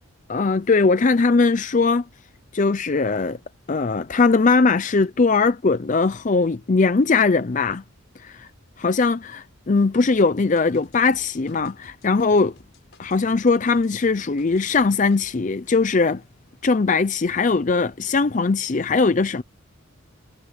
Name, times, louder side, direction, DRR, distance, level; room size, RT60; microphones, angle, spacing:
voice 1, 0.3-2.1 2.5-3.4 3.7-7.8 8.2-8.5 8.8-12.5 13.0-16.2 16.6-19.4, left 4 dB, 35° left, 0.5 m, -20 dB
sound 1, 10.5-15.4, left 2 dB, 60° left, 6.0 m, -54 dB
head